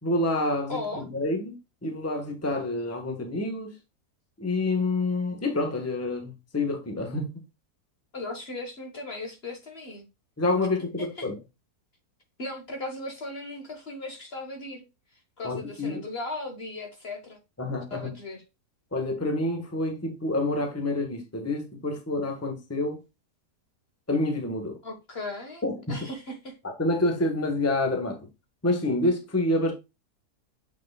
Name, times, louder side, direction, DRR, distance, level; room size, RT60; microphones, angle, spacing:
voice 1, 0.0-1.5 1.8-3.7 4.4-7.4 10.4-11.3 15.4-16.0 17.6-18.1 18.9-23.0 24.1-24.7 25.6-26.1 26.6-28.3 28.6-29.7, left 2 dB, 10° left, 1.3 m, -28 dB
voice 2, 0.7-1.0 8.1-10.1 11.0-11.3 12.4-14.8 15.4-17.4 17.9-18.4 24.8-25.6 25.9-26.6, left 2 dB, 40° left, 1.6 m, -37 dB
7.3 x 6.1 x 2.3 m
omnidirectional pair, 1.7 m